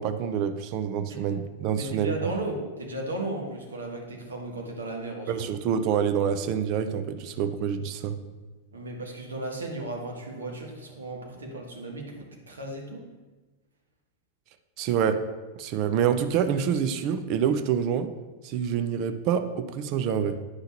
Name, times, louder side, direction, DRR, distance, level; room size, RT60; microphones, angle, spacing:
voice 1, 0.0-2.3 5.3-8.2 14.8-15.3 15.6-18.1 18.4-20.4, right 8 dB, 40° right, 9 dB, 0.6 m, -27 dB
voice 2, 1.7-5.4 8.7-13.0, right 2 dB, 70° right, 0 dB, 1.5 m, -35 dB
9.6 x 5.7 x 2.9 m, 1.2 s
figure-of-eight pair, 90°, 0 cm